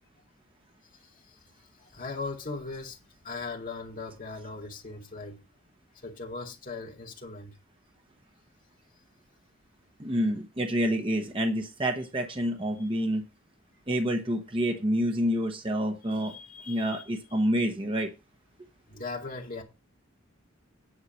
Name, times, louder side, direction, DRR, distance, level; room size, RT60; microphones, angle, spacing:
voice 1, 1.0-1.3 1.8-3.0 3.2-5.4 6.0-7.5 12.8-12.9 16.0-17.0 18.9-19.6, left 3 dB, 40° left, 2.2 m, -39 dB
voice 2, 10.0-13.2 13.9-16.3 16.7-18.1, equal, 25° right, 1.0 m, -28 dB
9.8 x 4.7 x 7.1 m
head